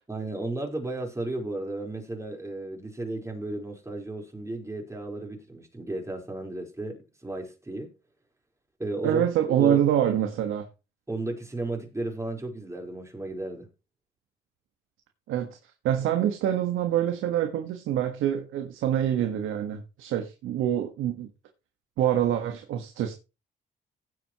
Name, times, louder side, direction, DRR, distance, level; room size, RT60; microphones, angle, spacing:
voice 1, 0.1-7.9 8.8-9.2 9.6-9.8 11.1-13.7, right 2 dB, 15° right, 4.4 m, -34 dB
voice 2, 9.0-10.7 15.3-15.6 15.8-21.3 22.0-23.1, right 10 dB, 90° right, 1.6 m, -25 dB
16.5 x 7.8 x 3.1 m
cardioid pair, 90°, 20 cm